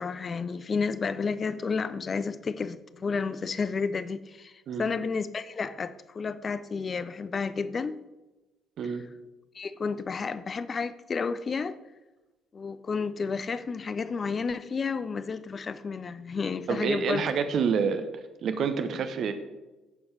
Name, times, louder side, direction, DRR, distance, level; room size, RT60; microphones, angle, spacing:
voice 1, 0.0-4.5 4.8-8.0 9.5-11.8 12.5-17.3, left 5 dB, 35° left, 0.5 m, -31 dB
voice 2, 16.7-18.1 18.4-19.3, right 6 dB, 55° right, 1.0 m, -27 dB
15.0 x 7.1 x 3.4 m
figure-of-eight pair, 50°, 0 cm